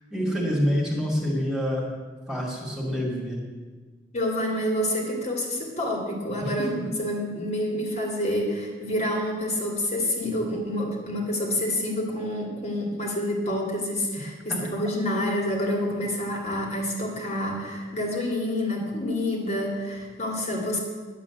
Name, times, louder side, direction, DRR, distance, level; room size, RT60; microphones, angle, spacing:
voice 1, 0.1-1.9 2.3-3.4 6.4-6.8 14.5-14.6, equal, 5° right, -3 dB, 2.3 m, -27 dB
voice 2, 4.1-20.8, left 1 dB, 40° left, -1 dB, 2.5 m, -28 dB
10.5 x 8.1 x 8.4 m, 1.4 s
head